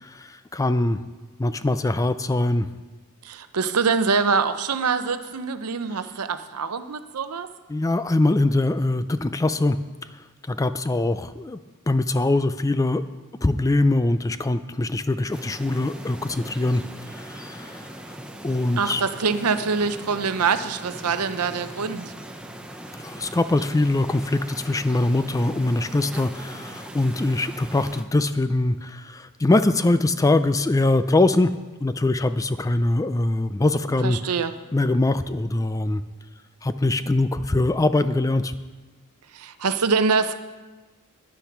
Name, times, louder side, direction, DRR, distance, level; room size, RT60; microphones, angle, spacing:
voice 1, 0.0-1.0 1.4-2.7 7.7-9.8 10.5-11.6 11.9-13.0 13.4-16.8 17.3-17.8 18.4-19.0 23.0-31.5 31.8-34.2 34.7-36.0 36.6-38.5, left 2 dB, 15° left, 12 dB, 0.3 m, -22 dB
voice 2, 3.2-7.5 18.8-22.1 34.0-34.5 39.3-40.3, right 5 dB, 85° right, 11 dB, 0.7 m, -24 dB
sound 1, 15.3-28.0, right 1 dB, 5° right, 0.7 m, -40 dB
10.0 x 10.0 x 5.9 m, 1.2 s
head